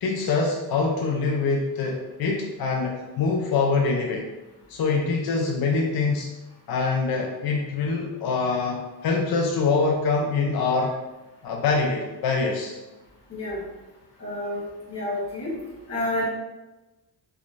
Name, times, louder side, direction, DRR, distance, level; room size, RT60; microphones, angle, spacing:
voice 1, 0.0-4.2 4.7-6.3 6.7-10.9 11.4-12.8, left 4 dB, 65° left, 0 dB, 0.6 m, -24 dB
voice 2, 13.3-13.6 14.2-15.5 15.9-16.2, left 1 dB, 40° left, -9 dB, 1.2 m, -29 dB
3.5 x 2.9 x 2.5 m, 1.1 s
cardioid pair, 70°, 40 cm